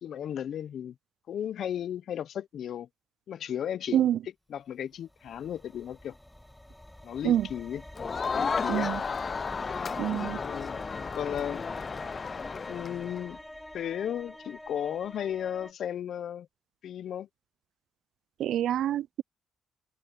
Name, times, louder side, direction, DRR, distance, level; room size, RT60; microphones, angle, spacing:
voice 1, 0.0-0.9 1.3-2.9 3.3-4.1 4.5-6.2 7.0-7.8 8.3-8.9 10.4-10.8 11.1-11.9 12.7-13.4 13.7-16.5 16.8-17.3, left 9 dB, 65° left, 0.7 m, -35 dB
sound 1, 5.0-15.7, left 1 dB, 5° left, 2.1 m, -46 dB
Crowd, 8.0-13.3, left 5 dB, 40° left, 0.4 m, -33 dB
voice 2, 8.7-9.0 10.0-10.4 18.4-19.2, right 11 dB, 75° right, 0.3 m, -26 dB
cardioid pair, 90°, 0 cm